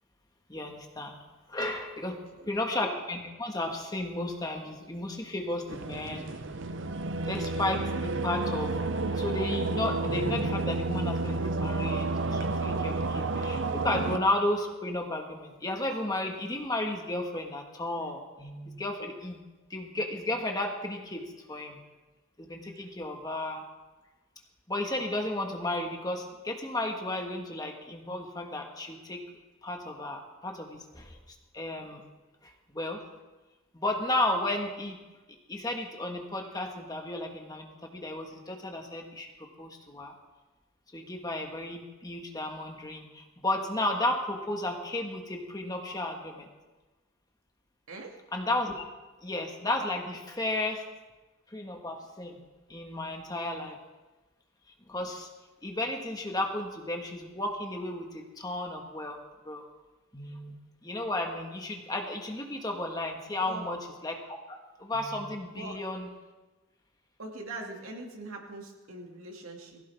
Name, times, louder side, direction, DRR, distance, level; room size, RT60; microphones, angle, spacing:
voice 1, 0.5-1.2 1.5-2.2 2.5-6.3 7.3-8.8 9.1-19.4 19.7-21.8 22.4-23.6 24.7-29.2 29.6-31.2 31.5-32.0 32.7-33.0 33.7-35.0 35.5-39.3 39.6-40.1 40.9-46.5 48.3-48.7 49.2-50.8 51.5-52.4 52.7-53.8 54.9-55.3 55.6-59.2 59.4-59.6 60.1-60.6 60.8-66.1, left 1 dB, 20° left, 2 dB, 1.5 m, -33 dB
voice 2, 2.0-2.5 47.9-48.2 63.4-63.7 65.5-65.8 67.2-69.8, right 2 dB, 85° right, 1 dB, 2.3 m, -42 dB
sound 1, 5.7-14.2, right 3 dB, 60° right, 0.6 m, -31 dB
19.5 x 16.0 x 3.5 m, 1.2 s
head